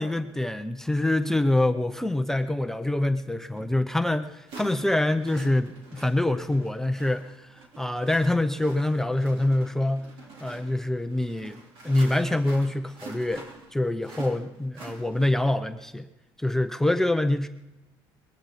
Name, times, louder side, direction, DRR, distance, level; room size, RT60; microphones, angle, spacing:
voice 1, 0.0-10.1 10.4-11.6 11.8-13.5 13.7-16.1 16.4-17.5, left 1 dB, 5° left, 8 dB, 0.5 m, -25 dB
sound 1, 3.6-3.7 4.5-15.5, right 3 dB, 70° right, 3.7 m, -46 dB
20.5 x 15.0 x 4.0 m, 0.99 s
cardioid pair, 140°, 9 cm